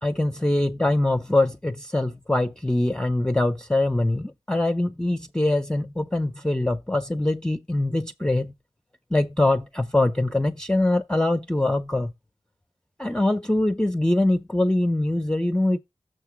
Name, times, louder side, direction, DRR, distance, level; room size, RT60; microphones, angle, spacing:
voice 1, 0.0-8.5 9.1-12.1 13.0-15.8, left 1 dB, 5° left, 0.5 m, -23 dB
6.6 x 3.7 x 5.8 m
cardioid pair, 50°, 12 cm